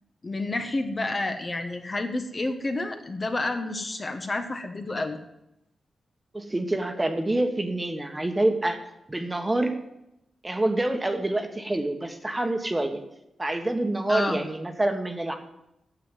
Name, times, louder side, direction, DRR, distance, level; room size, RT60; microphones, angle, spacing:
voice 1, 0.2-5.2 14.1-14.4, left 2 dB, 35° left, 6 dB, 1.3 m, -29 dB
voice 2, 6.3-8.8 9.1-9.8 10.4-13.0 13.4-15.4, right 1 dB, 20° right, 6 dB, 1.4 m, -26 dB
9.6 x 7.5 x 9.0 m, 0.85 s
cardioid pair, 90°, 0 cm